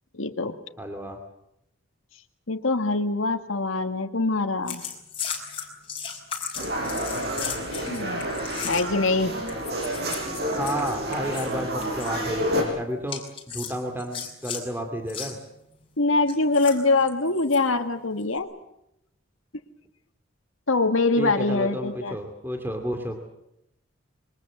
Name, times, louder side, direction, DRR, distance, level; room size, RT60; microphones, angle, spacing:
voice 1, 0.1-0.6 2.5-4.8 7.7-8.3 8.6-9.4 16.0-18.5 20.7-22.2, left 3 dB, 80° left, 6 dB, 1.9 m, -24 dB
voice 2, 0.8-1.2 10.6-13.2 13.5-15.4 21.2-23.2, equal, 10° right, 4 dB, 2.5 m, -31 dB
sound 1, 4.7-9.1 9.5-11.5 11.8-12.1 13.1-14.6 15.1-15.3 16.3-17.6 18.2-18.4, left 7 dB, 25° left, 5.4 m, -36 dB
sound 2, 6.6-12.6, equal, 50° right, 6.1 m, -29 dB
27.0 x 23.5 x 7.7 m, 0.80 s
head